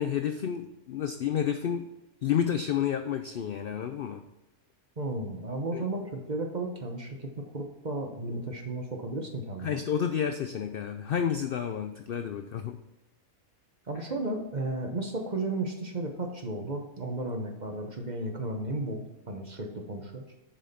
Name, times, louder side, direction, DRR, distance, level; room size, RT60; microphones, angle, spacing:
voice 1, 0.0-1.9 2.2-4.2 5.7-5.8 9.6-12.8, left 8 dB, 75° left, 8 dB, 0.5 m, -30 dB
voice 2, 5.0-9.8 13.9-19.0 19.3-20.2, right 2 dB, 35° right, 3 dB, 0.9 m, -34 dB
7.3 x 5.5 x 4.2 m, 0.98 s
omnidirectional pair, 1.5 m